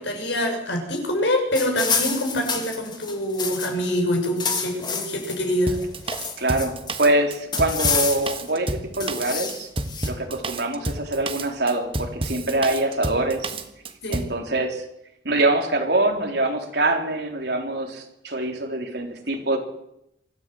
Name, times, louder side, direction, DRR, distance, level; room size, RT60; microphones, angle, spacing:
voice 1, 0.0-5.8 6.1-6.3 14.0-14.3, left 1 dB, 80° left, 2 dB, 6.5 m, -25 dB
sound 1, 1.6-3.9 4.2-5.4 5.7-6.9 7.5-8.5 9.0-10.1, left 5 dB, 25° left, 2.3 m, -28 dB
Drum kit, 5.7-14.4, right 2 dB, 30° right, 1.4 m, -30 dB
voice 2, 6.4-9.7 10.1-13.5 14.1-14.8 15.2-19.6, right 2 dB, 65° right, 3 dB, 3.8 m, -24 dB
24.0 x 14.0 x 7.9 m, 0.82 s
head